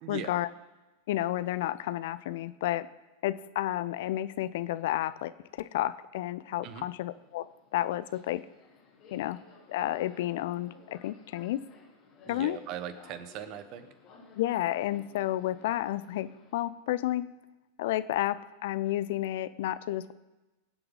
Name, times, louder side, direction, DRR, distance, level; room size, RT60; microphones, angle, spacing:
voice 1, 0.1-0.5 1.1-2.9 3.2-5.3 5.6-7.5 7.7-8.4 9.1-9.4 9.7-11.6 12.3-12.6 14.4-17.3 17.8-20.1, left 14 dB, 55° left, 15 dB, 0.6 m, -31 dB
Subway metro underground, 7.1-16.6, left 4 dB, 35° left, 3.0 m, -57 dB
voice 2, 12.2-13.9, right 10 dB, 40° right, 12 dB, 1.1 m, -39 dB
23.5 x 7.9 x 3.7 m, 1.1 s
figure-of-eight pair, 90°, 0 cm